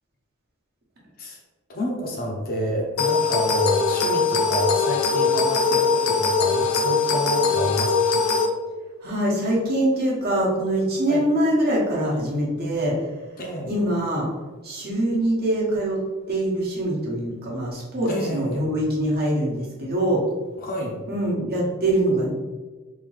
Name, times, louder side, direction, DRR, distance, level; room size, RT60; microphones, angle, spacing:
voice 1, 1.7-8.1 11.1-11.2 13.4-13.7 18.1-18.7 20.6-21.0, equal, 45° left, -1 dB, 0.8 m, -29 dB
sound 1, 3.0-8.5, left 4 dB, 85° left, 0.5 m, -21 dB
voice 2, 9.0-13.0 13.7-14.3 14.6-16.0 16.3-20.2 21.1-22.3, right 1 dB, 45° right, -4 dB, 1.1 m, -23 dB
3.7 x 2.7 x 3.2 m, 1.3 s
head